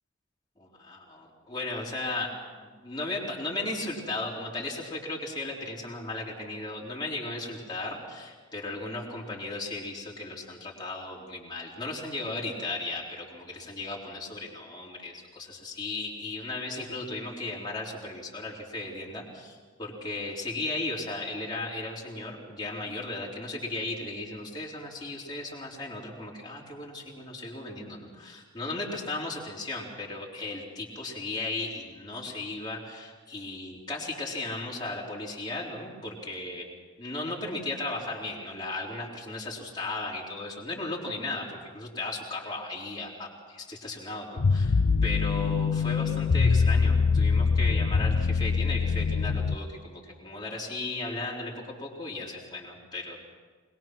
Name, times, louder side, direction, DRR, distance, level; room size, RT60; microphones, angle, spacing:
voice 1, 0.6-2.3 2.6-36.7 37.0-51.5 51.8-53.2, left 2 dB, 20° left, -4 dB, 3.7 m, -36 dB
sound 1, 44.4-49.6, left 5 dB, 85° left, 0.6 m, -24 dB
21.5 x 21.5 x 6.1 m, 1.5 s
head